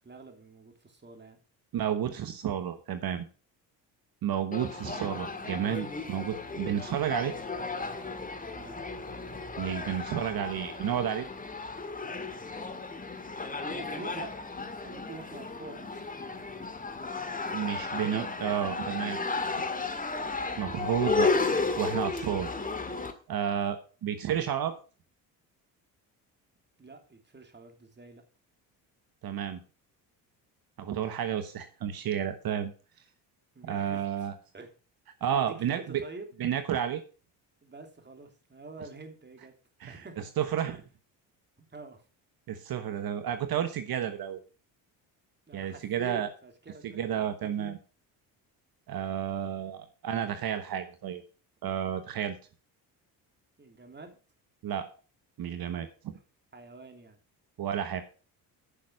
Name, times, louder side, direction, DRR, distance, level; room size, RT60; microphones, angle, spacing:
voice 1, 0.0-1.4 8.6-8.8 13.6-14.3 14.6-16.2 26.8-28.2 33.5-34.3 34.5-34.7 35.3-36.3 37.6-39.5 39.9-40.3 41.7-42.0 42.9-43.1 45.5-47.3 47.6-47.8 52.0-52.2 53.6-54.2 56.5-57.2, right 3 dB, 25° right, 5 dB, 3.1 m, -46 dB
voice 2, 1.7-3.3 4.2-7.3 9.6-11.3 17.5-19.3 19.5-19.6 20.6-21.3 21.8-22.5 23.3-24.8 29.2-29.6 30.8-32.7 33.6-34.3 35.2-36.0 36.4-37.0 39.8-40.8 42.5-44.4 45.5-46.3 46.9-47.8 48.9-51.2 51.6-52.3 54.6-54.9 55.4-55.9 57.6-58.0, right 9 dB, 55° right, 9 dB, 1.3 m, -31 dB
sound 1, 4.5-23.1, left 3 dB, 20° left, 1.9 m, -34 dB
10.0 x 6.4 x 6.4 m, 0.36 s
supercardioid pair, 75°, 43 cm